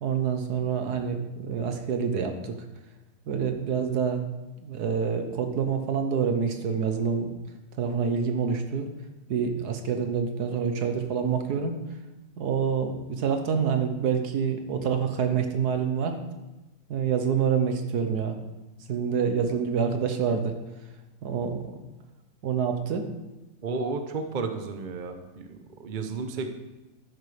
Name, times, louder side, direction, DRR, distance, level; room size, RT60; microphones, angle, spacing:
voice 1, 0.0-2.6 3.3-4.2 4.6-7.3 7.8-8.9 9.3-11.7 12.4-16.2 16.9-18.4 18.9-20.6 21.2-21.8 22.4-23.1, right 6 dB, 65° right, 6 dB, 1.4 m, -27 dB
voice 2, 23.6-26.5, right 4 dB, 45° right, 6 dB, 0.6 m, -32 dB
11.5 x 9.1 x 3.3 m, 1.0 s
omnidirectional pair, 1.9 m